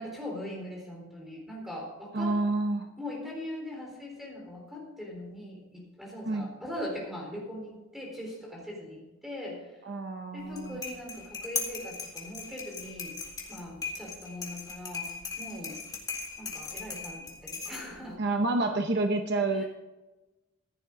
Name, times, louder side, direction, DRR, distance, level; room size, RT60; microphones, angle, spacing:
voice 1, 0.0-2.3 3.0-9.8 10.3-13.2 13.5-15.1 15.4-15.8 16.4-18.2 19.5-19.7, left 1 dB, ahead, -2 dB, 3.8 m, -40 dB
voice 2, 2.1-2.9 6.3-6.5 9.8-10.8 18.2-19.6, right 2 dB, 50° right, 5 dB, 0.8 m, -28 dB
sound 1, 10.4-18.1, left 4 dB, 20° left, 2.1 m, -39 dB
15.0 x 11.0 x 3.8 m, 1.1 s
head